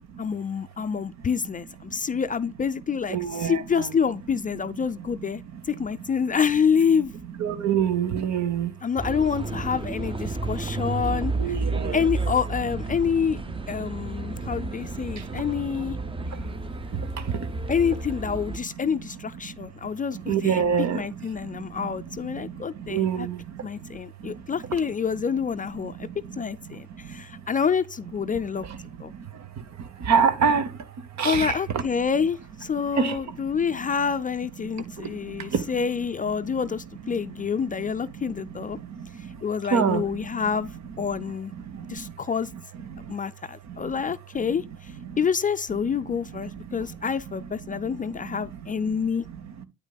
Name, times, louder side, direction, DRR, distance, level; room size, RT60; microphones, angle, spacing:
voice 1, 0.2-5.4 5.7-7.1 8.8-11.6 11.9-13.4 13.7-16.0 17.7-23.3 23.6-26.1 26.3-28.6 29.0-29.1 31.2-38.8 39.4-41.5 41.9-42.5 43.1-49.3, left 6 dB, 25° left, 0.4 m, -27 dB
voice 2, 3.1-3.9 7.4-8.7 11.4-12.0 20.3-21.0 22.9-23.4 30.1-30.7 31.2-31.8 33.0-33.1 35.5-35.6 39.7-40.0, right 7 dB, 65° right, 1.0 m, -24 dB
sound 1, 9.0-18.6, right 3 dB, 20° right, 0.6 m, -32 dB
8.9 x 8.0 x 2.3 m
cardioid pair, 90°, 30 cm